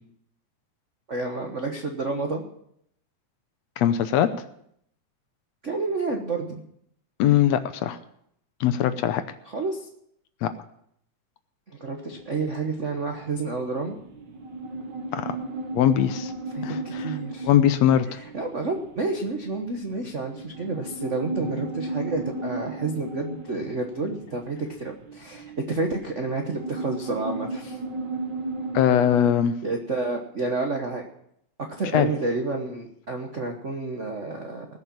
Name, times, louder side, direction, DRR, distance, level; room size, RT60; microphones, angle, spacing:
voice 1, 1.1-2.4 5.6-6.6 9.5-9.8 11.7-14.0 16.5-17.5 18.3-27.8 29.6-31.1 31.8-34.7, right 3 dB, 90° right, 3 dB, 0.6 m, -29 dB
voice 2, 3.8-4.3 7.2-8.0 8.6-9.2 10.4-10.5 15.1-15.4 15.7-16.3 16.6-17.2 17.4-18.1 28.7-29.6 31.9-32.1, left 10 dB, 70° left, 11 dB, 1.8 m, -21 dB
sound 1, 12.1-29.3, right 2 dB, 45° right, 1.6 m, -36 dB
19.5 x 6.7 x 7.2 m, 0.71 s
omnidirectional pair, 3.4 m